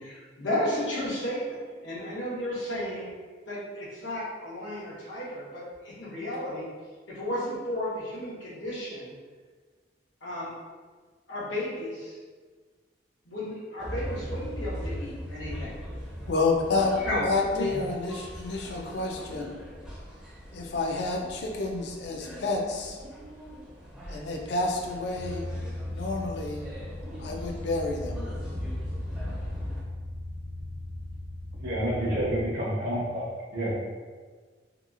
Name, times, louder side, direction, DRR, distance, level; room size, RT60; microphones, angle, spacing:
voice 1, 0.0-3.1 3.5-6.7 7.1-9.1 10.2-10.5 11.3-12.2 13.3-15.8 17.0-17.3 17.5-18.0, left 1 dB, 90° left, -7 dB, 0.9 m, -33 dB
sound 1, 13.8-29.8, equal, 5° right, 0.4 m, -40 dB
voice 2, 16.3-19.6 20.5-23.0 24.1-25.5 25.9-26.6 27.2-28.2, left 3 dB, 60° left, 1 dB, 0.4 m, -29 dB
sound 2, 25.1-32.4, left 1 dB, 85° right, 0.7 m, -37 dB
voice 3, 31.6-33.7, right 1 dB, 50° right, -7 dB, 0.6 m, -29 dB
2.8 x 2.3 x 2.4 m, 1.5 s
head